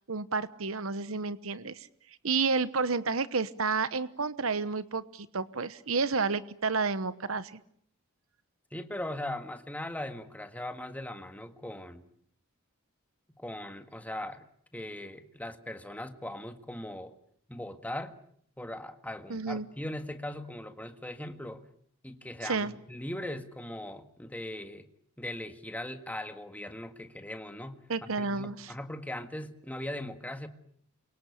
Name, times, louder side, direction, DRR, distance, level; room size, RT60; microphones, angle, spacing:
voice 1, 0.1-1.8 2.2-7.6 19.3-19.7 22.4-22.7 27.9-28.7, right 4 dB, 70° right, 14 dB, 1.1 m, -30 dB
voice 2, 8.7-12.1 13.4-14.4 14.7-17.1 17.5-18.2 18.6-21.6 22.0-24.9 25.2-27.8 28.2-30.5, left 1 dB, 5° left, 7 dB, 1.8 m, -39 dB
28.5 x 24.0 x 8.4 m, 0.65 s
head